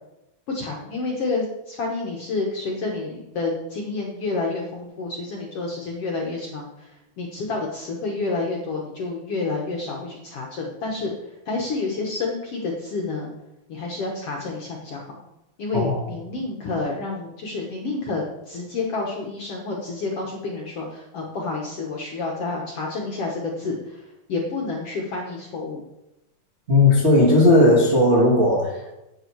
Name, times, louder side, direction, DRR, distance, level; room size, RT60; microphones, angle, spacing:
voice 1, 0.5-13.3 13.7-15.2 15.6-25.8, left 3 dB, 55° left, -1 dB, 1.8 m, -29 dB
voice 2, 15.7-16.0 26.7-28.9, left 2 dB, 30° right, -4 dB, 1.4 m, -16 dB
9.9 x 8.2 x 4.7 m, 0.92 s
omnidirectional pair, 4.1 m